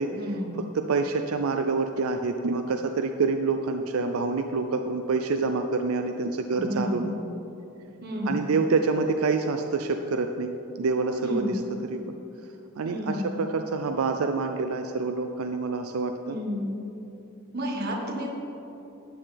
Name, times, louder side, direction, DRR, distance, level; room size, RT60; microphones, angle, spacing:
voice 1, 0.1-0.6 6.6-7.2 8.0-8.5 11.2-11.6 12.8-13.3 16.3-16.8 17.5-18.3, equal, 50° right, -1 dB, 1.5 m, -31 dB
voice 2, 0.7-7.1 8.3-10.5 10.8-11.6 11.9-12.2 12.8-16.4, right 4 dB, 85° right, 6 dB, 0.4 m, -27 dB
13.0 x 8.7 x 3.4 m, 2.9 s
head